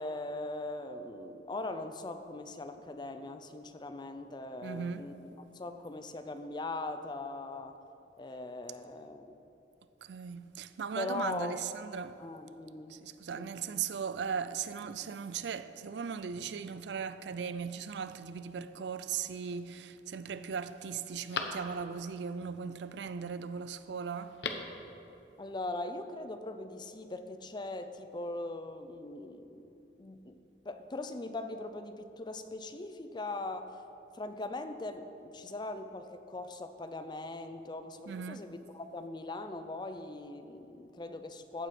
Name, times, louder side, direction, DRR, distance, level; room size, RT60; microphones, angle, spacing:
voice 1, 0.0-7.7 8.2-9.4 11.0-11.6 12.2-13.0 13.4-13.5 25.4-30.4 30.6-33.8 34.1-41.7, left 2 dB, 25° left, 0.5 m, -40 dB
voice 2, 4.6-5.0 10.0-12.2 12.9-24.4 38.1-38.4, right 6 dB, 75° right, 0.4 m, -38 dB
Telephone, 19.0-19.6 20.1-20.2 20.6-22.1 24.2-24.8 25.1-25.2, left 4 dB, 75° left, 0.8 m, -41 dB
15.0 x 8.0 x 4.3 m
head